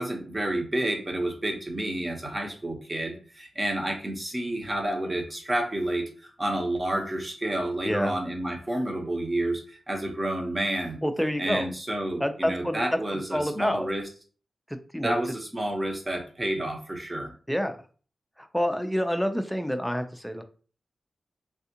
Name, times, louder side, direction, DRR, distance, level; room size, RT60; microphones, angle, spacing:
voice 1, 0.0-11.0 11.4-14.0 15.0-17.3, right 1 dB, 30° right, 3 dB, 0.9 m, -30 dB
voice 2, 7.8-8.1 11.0-11.7 12.2-12.8 13.1-13.9 14.7-15.1 17.5-17.8 18.4-20.4, equal, ahead, 7 dB, 0.5 m, -28 dB
3.5 x 2.4 x 2.8 m, 0.40 s
cardioid pair, 55°, 0 cm